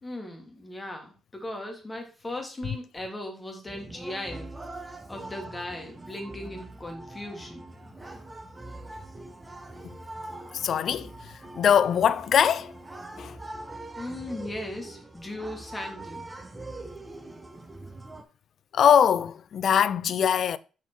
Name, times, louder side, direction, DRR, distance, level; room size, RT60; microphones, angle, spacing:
voice 1, 0.0-4.5 5.1-7.7 14.0-16.3, left 1 dB, 20° left, 1.7 m, -37 dB
sound 1, 3.7-18.2, right 2 dB, 15° right, 0.9 m, -42 dB
voice 2, 10.5-11.1 11.6-12.7 13.2-13.4 18.7-20.6, left 8 dB, 60° left, 0.3 m, -22 dB
5.7 x 4.4 x 4.4 m
cardioid pair, 90°, 0 cm